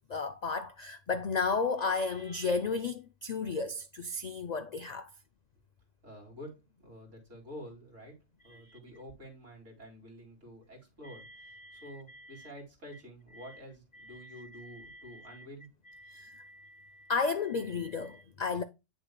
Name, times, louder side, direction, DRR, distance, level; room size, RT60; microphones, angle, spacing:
voice 1, 0.1-5.1 8.5-8.8 11.0-12.5 13.4-13.6 14.0-15.5 15.9-18.6, left 4 dB, 80° left, 0.3 m, -34 dB
voice 2, 6.0-15.8, equal, 70° right, 2.8 m, -49 dB
8.8 x 6.1 x 2.2 m
omnidirectional pair, 1.3 m